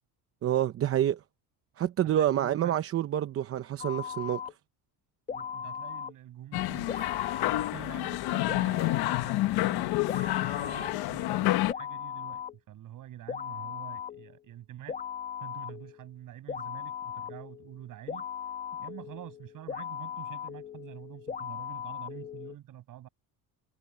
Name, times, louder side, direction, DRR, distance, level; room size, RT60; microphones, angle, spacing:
voice 1, 0.4-1.2 1.8-4.4, right 11 dB, 35° right, 0.7 m, -27 dB
voice 2, 2.1-2.7 5.3-6.9 7.5-9.9 10.4-15.0 15.4-18.3 18.8-23.1, right 12 dB, 50° right, 7.6 m, -47 dB
sound 1, 3.8-4.5 5.3-6.1 6.9-7.7 8.5-9.3 10.1-10.9 11.7-12.6 13.3-14.4 14.9-16.1 16.5-22.6, left 7 dB, 20° left, 1.3 m, -38 dB
sound 2, 6.5-11.7, left 17 dB, 65° left, 1.3 m, -29 dB
cardioid pair, 165°, 41 cm